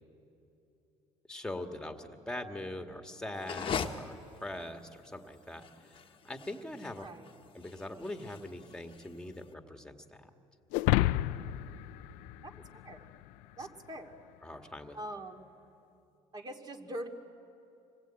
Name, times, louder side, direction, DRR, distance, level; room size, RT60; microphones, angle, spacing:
voice 1, 1.3-5.6 5.9-6.0 6.2-7.1 7.5-10.3 13.6-13.7 14.4-15.0, left 1 dB, 5° left, 5 dB, 1.8 m, -42 dB
sound 1, 3.3-9.5, left 7 dB, 40° left, 1.2 m, -41 dB
voice 2, 7.0-7.3 12.4-12.5 12.8-13.1 13.6-14.2 14.9-15.5 16.3-17.1, right 1 dB, 30° right, 3 dB, 2.5 m, -42 dB
sound 2, 10.7-13.2, left 17 dB, 90° left, 0.5 m, -30 dB
26.5 x 20.5 x 9.0 m, 2.8 s
cardioid pair, 100°, 14 cm